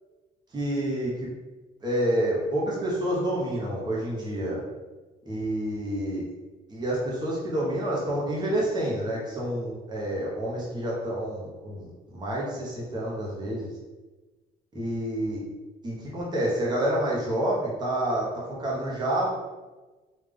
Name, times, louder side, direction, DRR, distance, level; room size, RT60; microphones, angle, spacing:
voice 1, 0.5-1.3 1.8-4.6 5.3-6.2 6.7-13.7 14.7-15.4 15.8-19.3, right 1 dB, 25° right, -5 dB, 1.2 m, -28 dB
3.4 x 2.7 x 3.6 m, 1.2 s
cardioid pair, 110°, 17 cm